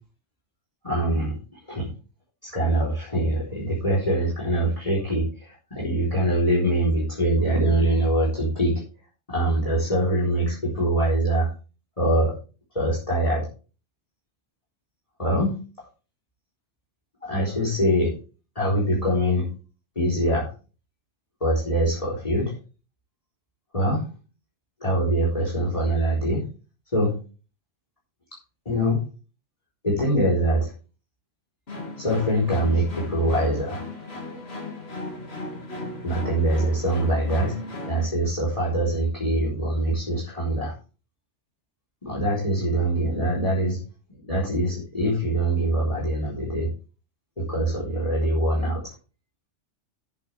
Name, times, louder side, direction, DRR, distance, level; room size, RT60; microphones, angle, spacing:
voice 1, 0.8-1.3 1.7-1.9 2.4-8.8 9.3-11.5 12.0-12.3 12.7-13.5 15.2-15.5 17.2-18.1 18.6-19.5 20.0-20.5 21.4-22.5 23.7-24.1 24.8-26.4 26.9-27.1 28.7-29.0 29.8-30.7 32.0-33.8 36.0-37.5 37.9-40.7 42.0-43.8 44.2-46.7 47.4-48.8, right 1 dB, 30° left, -3 dB, 4.1 m, -23 dB
sound 1, 31.7-38.1, left 2 dB, 55° left, 2.4 m, -36 dB
14.5 x 7.8 x 3.4 m, 0.35 s
omnidirectional pair, 1.2 m